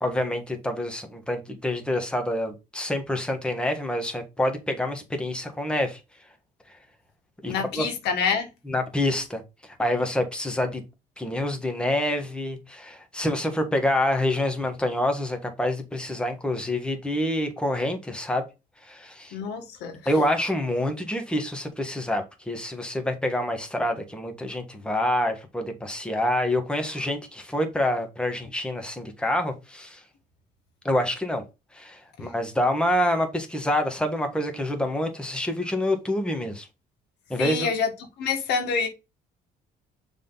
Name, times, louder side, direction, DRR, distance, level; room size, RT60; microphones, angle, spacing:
voice 1, 0.0-6.0 7.4-7.9 8.7-9.4 9.8-10.8 11.2-18.4 18.8-19.3 20.0-30.0 30.8-31.4 31.7-36.7 37.3-37.7, left 1 dB, 5° left, 1.5 m, -27 dB
voice 2, 7.5-8.5 19.3-20.1 32.2-32.3 37.4-37.9 38.2-38.9, left 5 dB, 80° left, 1.9 m, -27 dB
6.6 x 3.7 x 3.9 m
cardioid pair, 110°, 17 cm